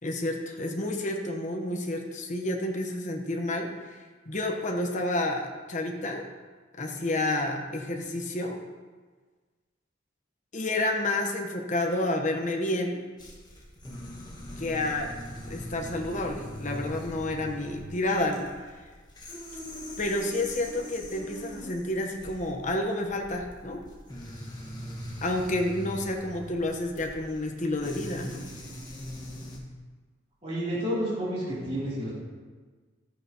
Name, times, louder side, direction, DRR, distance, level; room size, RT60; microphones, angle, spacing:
voice 1, 0.0-4.0 4.3-6.3 6.8-8.6 10.5-13.0 14.6-15.1 15.5-18.7 20.0-23.8 25.2-28.5, left 1 dB, 40° left, 2 dB, 1.1 m, -30 dB
sound 1, 13.2-29.6, left 1 dB, 20° left, 1.6 m, -42 dB
voice 2, 30.4-32.1, equal, 35° right, -9 dB, 3.2 m, -30 dB
13.5 x 8.9 x 3.0 m, 1.4 s
head